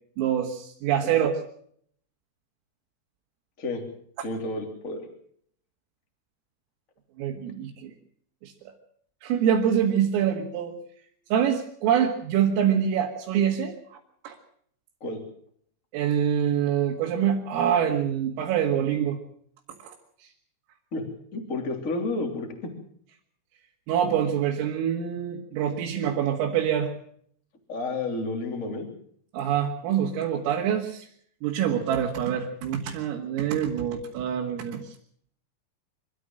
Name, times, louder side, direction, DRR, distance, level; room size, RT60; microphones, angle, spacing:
voice 1, 0.2-1.4 7.2-7.9 8.4-8.7 9.2-10.8 11.3-13.8 14.2-14.4 15.9-19.2 19.8-19.9 23.9-26.9 29.3-31.1 31.4-34.8, right 9 dB, 80° right, -1 dB, 4.5 m, -25 dB
voice 2, 4.2-5.1 15.0-15.2 20.9-21.0 21.3-22.7 27.7-28.9, left 2 dB, 20° left, 3 dB, 2.5 m, -31 dB
25.5 x 13.5 x 7.7 m, 0.64 s
omnidirectional pair, 5.9 m